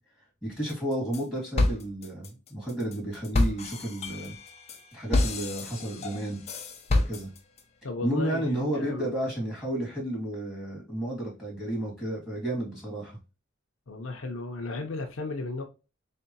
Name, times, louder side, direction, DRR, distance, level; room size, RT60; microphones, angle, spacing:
voice 1, 0.4-4.4 4.9-6.4 6.9-7.3 8.0-13.2, right 1 dB, 5° right, 2.2 m, -32 dB
sound 1, 0.7-1.2 1.6-7.6, left 2 dB, 30° left, 0.6 m, -29 dB
voice 2, 5.7-6.1 7.8-9.1 13.9-15.6, left 3 dB, 75° left, 0.7 m, -35 dB
3.7 x 3.4 x 2.8 m
head